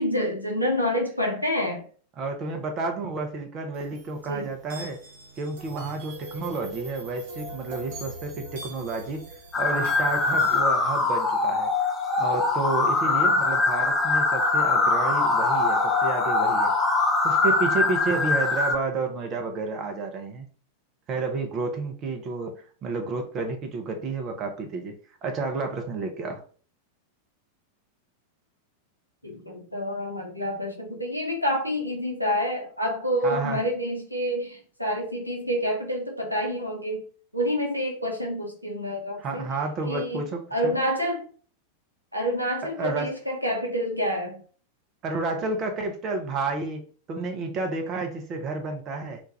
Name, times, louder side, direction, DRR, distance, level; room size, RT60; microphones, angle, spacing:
voice 1, 0.0-1.8 4.3-4.5 29.2-37.0 37.3-39.5 39.9-41.3 42.1-44.4, equal, 90° right, 0.7 m, -28 dB
voice 2, 2.2-5.0 5.4-9.2 9.6-11.7 12.2-16.7 17.2-20.5 21.1-22.5 22.8-25.0 25.2-26.4 33.2-33.6 39.2-40.8 42.6-43.1 45.0-46.8 47.1-49.2, right 3 dB, 30° right, 0.5 m, -30 dB
sound 1, 3.7-10.6, right 2 dB, 55° right, 0.9 m, -42 dB
sound 2, 9.5-18.8, left 3 dB, 20° left, 0.5 m, -23 dB
2.4 x 2.2 x 3.1 m
figure-of-eight pair, 90°, 0 cm